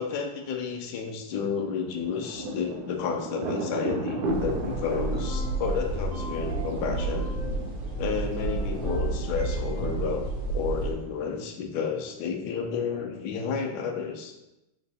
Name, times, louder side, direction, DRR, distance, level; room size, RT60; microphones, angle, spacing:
voice 1, 0.0-7.3 8.0-14.3, left 6 dB, 70° left, 3 dB, 1.0 m, -31 dB
Thunder, 1.8-11.3, right 1 dB, 70° right, 0.9 m, -36 dB
sound 1, 4.3-10.9, right 2 dB, 85° left, 0.4 m, -31 dB
sound 2, 5.1-7.8 8.1-10.0, right 1 dB, 85° right, 1.6 m, -40 dB
4.6 x 2.4 x 4.0 m, 0.94 s
omnidirectional pair, 2.2 m